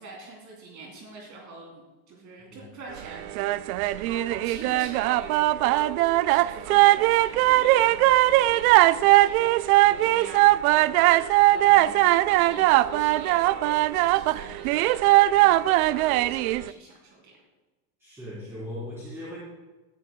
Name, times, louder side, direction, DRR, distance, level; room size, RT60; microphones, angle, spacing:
voice 1, 0.0-3.4 3.8-12.0 12.2-17.3, right 2 dB, 40° right, -2 dB, 3.2 m, -43 dB
sound 1, 3.2-16.7, right 17 dB, 70° right, 0.5 m, -20 dB
voice 2, 18.0-19.4, left 1 dB, 5° right, -9 dB, 3.6 m, -38 dB
18.0 x 10.0 x 2.3 m, 1.2 s
supercardioid pair, 150°, 46 cm